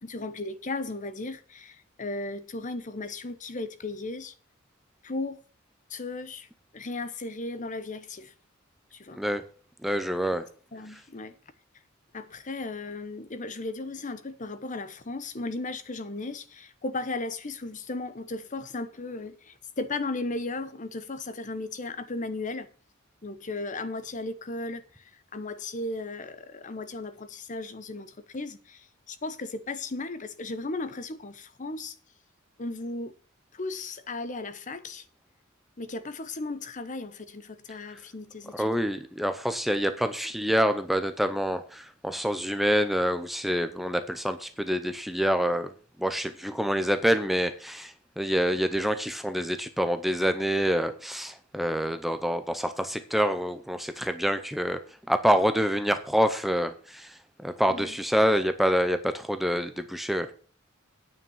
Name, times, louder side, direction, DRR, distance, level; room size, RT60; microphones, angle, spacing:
voice 1, 0.0-4.3 5.0-5.4 5.9-6.5 6.7-8.3 8.9-9.2 10.7-11.3 12.1-22.7 23.2-32.0 32.6-33.1 33.5-35.0 35.8-38.7 57.7-58.0, left 2 dB, 35° left, 0.8 m, -36 dB
voice 2, 9.8-10.5 10.9-11.0 38.5-45.7 46.0-54.8 55.1-60.3, equal, ahead, 0.6 m, -26 dB
9.5 x 5.8 x 7.2 m
head